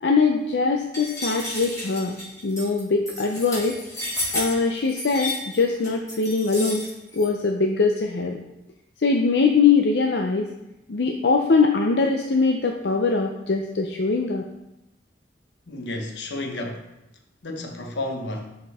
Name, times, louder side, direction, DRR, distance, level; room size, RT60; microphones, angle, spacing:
voice 1, 0.0-3.8 4.3-6.8 7.1-8.4 9.0-10.5 10.9-14.4, left 4 dB, 70° left, 2 dB, 0.6 m, -22 dB
sound 1, 0.9-7.3, left 1 dB, 20° left, 2.9 m, -32 dB
voice 2, 15.7-16.9 17.4-18.6, left 1 dB, 90° left, 3 dB, 1.1 m, -32 dB
11.0 x 4.4 x 3.5 m, 0.92 s
head